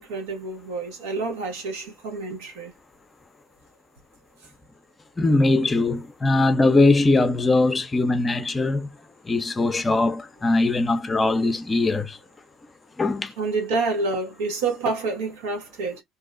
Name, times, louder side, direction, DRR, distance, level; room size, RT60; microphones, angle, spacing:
voice 1, 0.0-2.7 13.4-16.0, right 3 dB, 80° right, 0.9 m, -28 dB
voice 2, 5.2-8.9 9.3-12.2 13.0-13.3, left 2 dB, 25° left, 0.5 m, -21 dB
2.6 x 2.0 x 2.4 m
hypercardioid pair, 60°, 0 cm